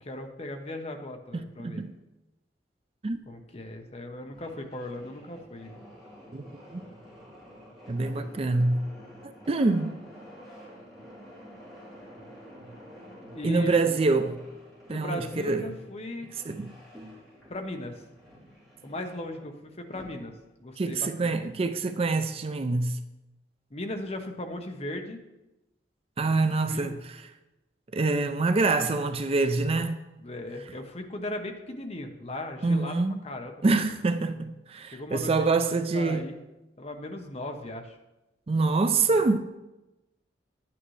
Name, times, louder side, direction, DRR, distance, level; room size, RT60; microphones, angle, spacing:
voice 1, 0.0-1.8 3.3-5.8 13.3-13.8 14.9-16.3 17.5-18.0 18.8-20.3 20.6-21.4 23.7-25.2 26.7-27.0 30.2-33.0 33.2-33.6 34.9-36.4 36.8-38.0, left 1 dB, 35° left, 0.9 m, -37 dB
voice 2, 1.6-1.9 3.0-3.2 6.3-6.4 6.7-6.8 7.9-8.8 9.5-10.0 13.4-14.4 14.9-15.8 16.5-16.7 20.8-23.0 26.2-27.0 27.9-30.0 32.6-33.2 33.6-36.3 38.5-39.4, right 3 dB, 35° right, 0.4 m, -25 dB
sound 1, 4.1-20.5, equal, ahead, 3.5 m, -49 dB
11.0 x 8.8 x 3.2 m
head